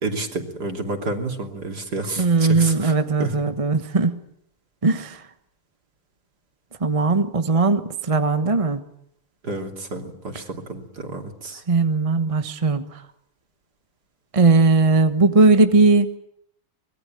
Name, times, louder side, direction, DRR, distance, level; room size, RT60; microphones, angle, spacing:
voice 1, 0.0-2.9 3.2-3.4 9.4-11.6, right 2 dB, 45° right, 4 dB, 3.5 m, -30 dB
voice 2, 2.2-4.2 4.8-5.2 6.8-8.8 11.7-12.8 14.3-16.1, right 3 dB, 25° right, 9 dB, 0.8 m, -18 dB
25.0 x 21.5 x 9.2 m, 0.73 s
omnidirectional pair, 2.4 m